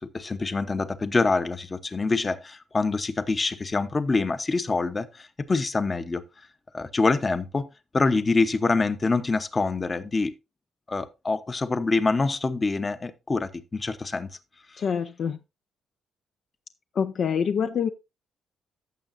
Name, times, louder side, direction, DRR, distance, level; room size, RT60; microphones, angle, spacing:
voice 1, 0.1-6.2 6.7-7.7 7.9-10.3 10.9-14.3 14.7-14.8, left 3 dB, 30° left, 0.8 m, -25 dB
voice 2, 14.8-15.4 16.9-17.9, left 7 dB, 55° left, 0.5 m, -26 dB
15.0 x 6.3 x 2.6 m
cardioid pair, 90°, 0 cm